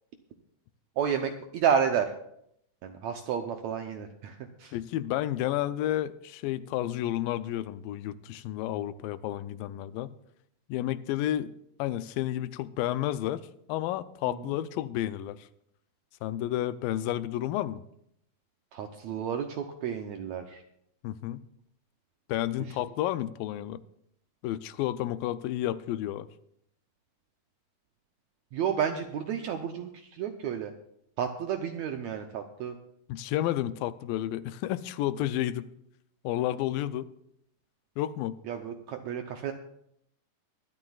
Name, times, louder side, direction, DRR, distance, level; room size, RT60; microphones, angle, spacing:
voice 1, 1.0-2.1 2.8-4.8 14.4-14.5 18.7-20.6 28.5-30.7 31.2-32.8 38.5-39.5, right 8 dB, 75° right, 5 dB, 1.6 m, -31 dB
voice 2, 4.7-10.1 10.7-11.5 11.8-13.4 13.7-15.4 16.2-17.8 21.0-21.4 22.3-23.8 24.4-26.3 33.1-35.7 36.2-37.1 38.0-38.4, left 13 dB, 90° left, 13 dB, 2.3 m, -31 dB
22.0 x 12.0 x 2.4 m, 0.72 s
omnidirectional pair, 4.0 m